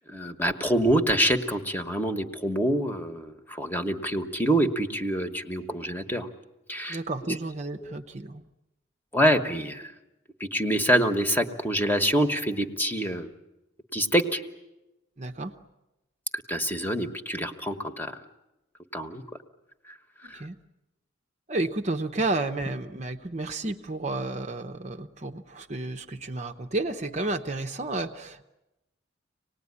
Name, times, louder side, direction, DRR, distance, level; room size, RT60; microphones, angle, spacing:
voice 1, 0.1-6.3 6.7-7.0 7.8-7.9 9.1-9.9 10.4-13.3 13.9-14.4 16.5-18.2 18.9-19.2 20.3-20.4, equal, 10° left, 7 dB, 1.2 m, -26 dB
voice 2, 6.9-8.4 15.2-15.5 20.2-20.6 21.5-28.4, right 2 dB, 35° right, 6 dB, 0.8 m, -31 dB
25.5 x 19.0 x 9.7 m, 0.98 s
head